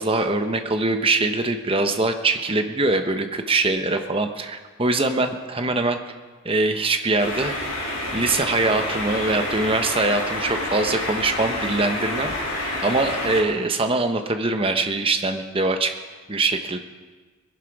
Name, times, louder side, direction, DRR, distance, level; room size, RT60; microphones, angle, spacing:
voice 1, 0.0-6.0 6.4-7.5 8.1-12.3 12.8-15.9 16.3-16.8, right 2 dB, 25° right, 6 dB, 1.0 m, -23 dB
sound 1, 7.2-13.4, left 1 dB, 80° left, 5.3 m, -28 dB
21.0 x 11.5 x 4.8 m, 1.4 s
head